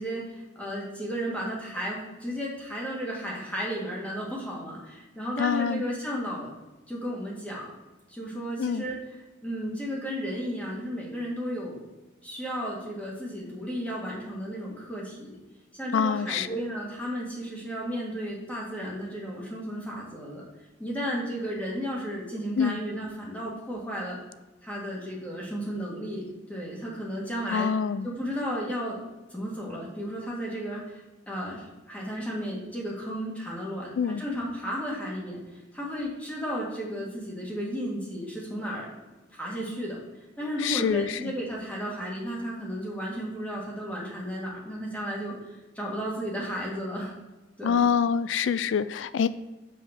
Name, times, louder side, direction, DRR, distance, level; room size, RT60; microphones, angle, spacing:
voice 1, 0.0-6.5 6.9-7.7 8.1-9.0 9.4-11.9 12.2-15.4 15.7-20.5 20.8-24.2 24.6-27.7 28.0-29.0 29.3-40.0 40.4-47.1 47.6-47.8, equal, 10° left, -4 dB, 1.9 m, -34 dB
voice 2, 5.4-5.8 8.6-8.9 15.9-16.5 22.6-22.8 27.5-28.1 34.0-34.2 40.6-41.2 47.6-49.3, left 7 dB, 80° left, 15 dB, 0.3 m, -25 dB
5.7 x 5.1 x 6.4 m, 1.1 s
head